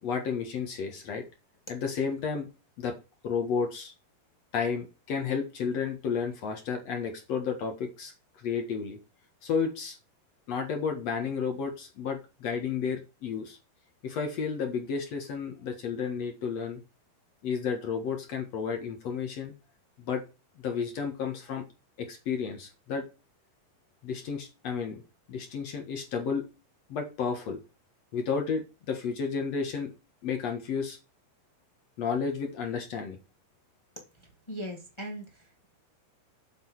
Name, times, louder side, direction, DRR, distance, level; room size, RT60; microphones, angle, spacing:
voice 1, 0.0-1.2 1.7-2.5 2.8-3.0 3.2-3.9 4.5-8.1 8.4-9.0 9.4-10.0 10.5-13.6 14.0-16.8 17.4-19.5 20.0-20.2 20.6-21.6 22.0-23.1 24.0-25.0 25.3-26.5 26.9-27.6 28.1-29.9 30.2-31.0 32.0-33.2, left 6 dB, 55° left, 4 dB, 2.0 m, -32 dB
voice 2, 34.5-35.6, equal, 35° left, 1 dB, 0.4 m, -39 dB
7.8 x 6.5 x 4.7 m, 0.29 s
omnidirectional pair, 4.6 m